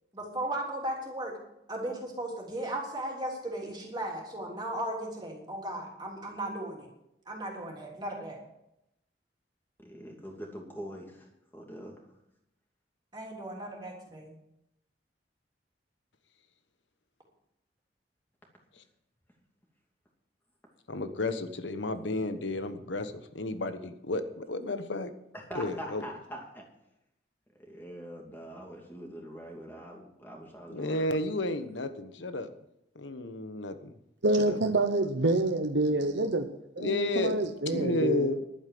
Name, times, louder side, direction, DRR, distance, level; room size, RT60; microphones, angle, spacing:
voice 1, 0.1-1.4 1.7-6.9 7.2-8.4 13.1-14.3, right 1 dB, 25° right, -1 dB, 3.3 m, -36 dB
voice 2, 9.8-11.3 11.5-11.9 25.5-26.6 27.6-31.0, equal, 10° left, 0 dB, 2.6 m, -43 dB
voice 3, 20.9-25.1 25.5-26.1 30.7-32.5 32.9-33.9 34.5-34.6 36.8-37.3 37.7-38.4, left 2 dB, 75° left, 10 dB, 1.2 m, -32 dB
voice 4, 34.2-36.5 36.8-38.3, right 2 dB, 70° right, 7 dB, 0.9 m, -27 dB
11.5 x 8.8 x 7.7 m, 0.84 s
head